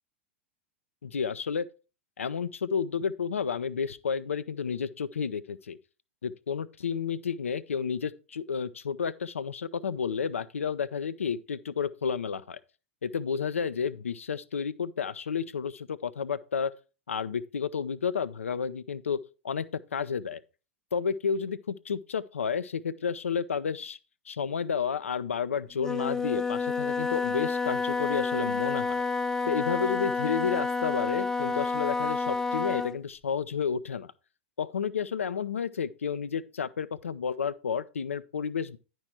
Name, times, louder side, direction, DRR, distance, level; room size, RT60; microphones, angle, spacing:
voice 1, 1.0-1.7 2.2-5.8 6.2-12.6 13.0-16.7 17.1-19.6 19.9-20.4 20.9-24.0 24.3-29.0 29.5-34.1 34.6-38.8, left 6 dB, 75° left, 0.5 m, -31 dB
Wind instrument woodwind instrument, 25.8-33.0, left 4 dB, 5° left, 0.5 m, -29 dB
10.5 x 4.6 x 4.6 m
figure-of-eight pair, 95°, 7 cm